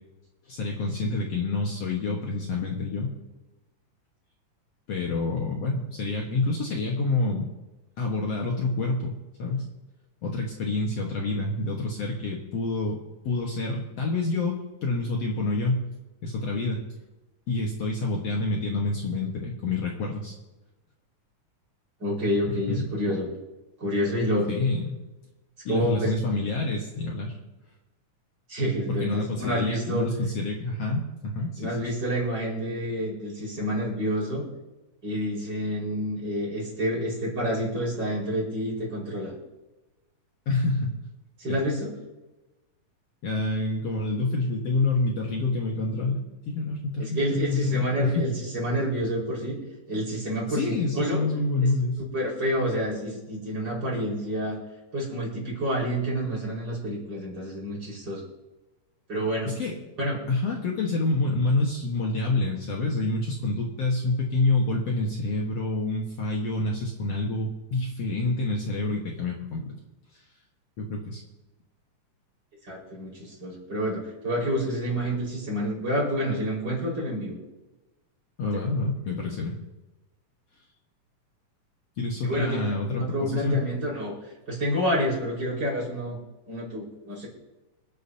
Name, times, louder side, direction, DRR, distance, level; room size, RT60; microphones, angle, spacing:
voice 1, 0.5-3.1 4.9-7.5 8.0-9.1 9.4-9.7 10.2-13.0 13.2-15.8 16.2-16.8 17.5-20.4 22.7-22.9 24.5-25.0 25.7-27.4 28.9-31.8 40.5-41.0 41.5-41.6 43.2-48.3 50.5-52.0 59.5-59.8 60.3-69.7 70.8-71.2 78.4-79.6 82.0-83.6, left 2 dB, 55° left, -1 dB, 2.2 m, -27 dB
voice 2, 22.0-23.3 23.8-24.5 25.7-26.1 28.5-30.1 31.6-34.4 35.0-39.3 41.4-41.9 47.0-49.6 49.9-51.3 52.1-54.6 54.9-58.2 59.1-59.5 60.0-60.2 72.7-77.4 78.5-78.6 82.2-84.1 84.5-86.2 86.5-87.3, equal, 30° right, -4 dB, 5.3 m, -28 dB
26.0 x 10.0 x 2.8 m, 1.1 s
omnidirectional pair, 3.7 m